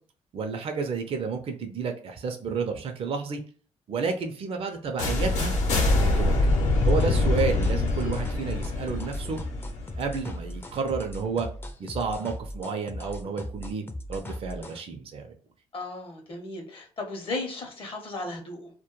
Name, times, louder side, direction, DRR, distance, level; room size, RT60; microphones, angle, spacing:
voice 1, 0.3-3.4 3.9-6.3 6.8-9.4 10.0-11.5 11.8-15.3, right 5 dB, 50° right, 4 dB, 0.4 m, -31 dB
sound 1, 5.0-10.8, left 2 dB, 85° left, 0.7 m, -25 dB
sound 2, 6.9-14.8, left 1 dB, 20° left, 0.4 m, -38 dB
voice 2, 15.7-18.7, left 2 dB, 50° left, 3 dB, 0.7 m, -35 dB
2.2 x 2.1 x 2.9 m, 0.43 s
cardioid pair, 95°, 12 cm